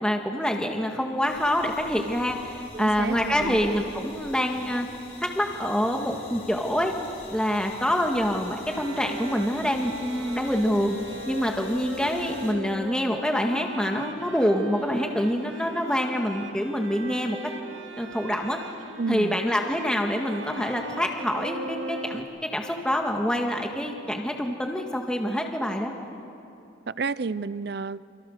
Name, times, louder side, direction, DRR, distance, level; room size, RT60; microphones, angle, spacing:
voice 1, 0.0-4.9 5.2-6.9 7.3-11.0 11.3-17.4 18.0-18.6 19.1-25.9, equal, 5° left, 2 dB, 1.8 m, -26 dB
sound 1, 1.2-12.5, left 2 dB, 35° left, 3.9 m, -46 dB
voice 2, 2.7-3.6 19.0-19.4 26.9-28.1, right 4 dB, 55° right, 18 dB, 0.5 m, -31 dB
Bowed string instrument, 8.7-22.2, right 2 dB, 80° right, 2.0 m, -39 dB
29.0 x 27.0 x 6.6 m, 2.7 s
head